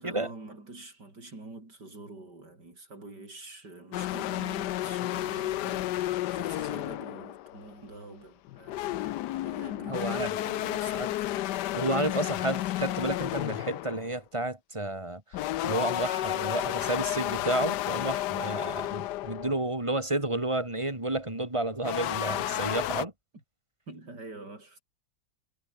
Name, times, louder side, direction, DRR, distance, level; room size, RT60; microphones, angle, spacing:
voice 1, 0.0-11.6 23.3-23.4 23.9-24.8, right 2 dB, 50° right, 6.9 m, -46 dB
sound 1, 3.9-7.8 8.5-14.1 15.3-19.6 21.8-23.1, left 15 dB, 70° left, 1.0 m, -32 dB
voice 2, 9.9-10.3 10.9-11.1 11.7-23.1, right 2 dB, 15° right, 3.6 m, -31 dB
omnidirectional pair, 2.2 m